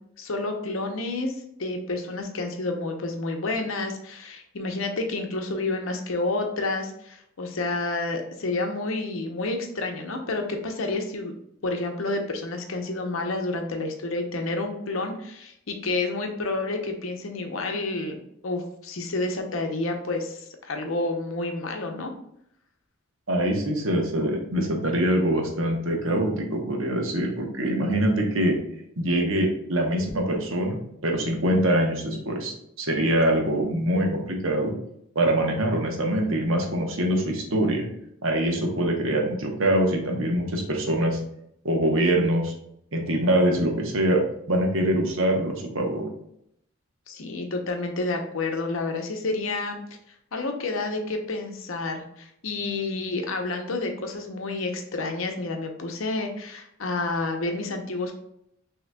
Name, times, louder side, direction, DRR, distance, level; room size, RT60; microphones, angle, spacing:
voice 1, 0.2-11.3 11.6-18.2 18.4-22.1 47.1-49.8 50.3-58.1, left 2 dB, 75° left, 4 dB, 0.7 m, -29 dB
voice 2, 23.3-28.6 29.0-34.7 35.1-37.9 38.2-41.2 41.6-42.5 42.9-44.2 44.5-46.1, right 1 dB, 70° right, 1 dB, 0.9 m, -24 dB
6.1 x 2.9 x 2.2 m, 0.75 s
head